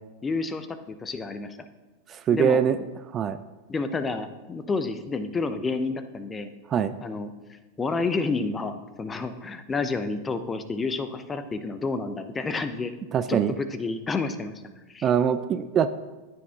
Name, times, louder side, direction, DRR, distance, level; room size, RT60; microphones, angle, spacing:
voice 1, 0.2-1.6 2.3-2.6 3.7-6.5 7.0-7.3 7.8-12.9 13.3-14.5 14.9-15.1, left 3 dB, 15° left, 11 dB, 0.6 m, -29 dB
voice 2, 2.1-2.8 3.1-3.4 6.7-6.9 13.1-13.5 15.0-15.9, right 8 dB, 25° right, 11 dB, 0.3 m, -23 dB
14.5 x 9.2 x 2.4 m, 1.2 s
figure-of-eight pair, 90°, 0 cm